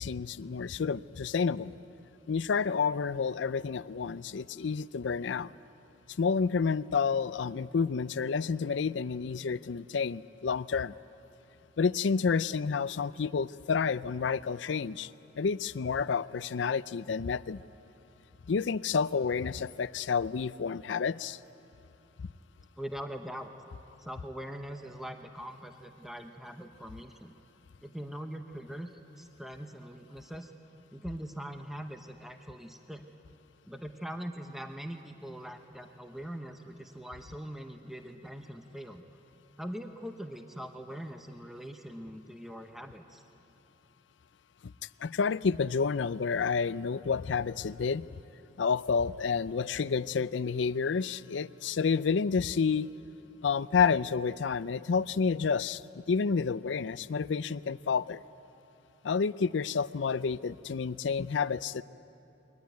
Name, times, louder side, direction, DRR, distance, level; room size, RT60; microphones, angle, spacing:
voice 1, 0.0-1.7 2.3-5.5 6.2-10.9 11.8-15.1 15.4-17.6 18.5-21.4 22.2-22.3 44.6-44.7 45.0-48.1 48.6-52.9 53.4-55.8 56.1-58.2 59.0-61.8, left 5 dB, 85° left, 17 dB, 0.5 m, -29 dB
voice 2, 22.8-23.5 24.0-27.3 27.8-30.5 30.9-33.0 33.7-39.0 39.6-43.2, equal, ahead, 5 dB, 0.8 m, -42 dB
23.0 x 19.0 x 9.4 m, 2.8 s
head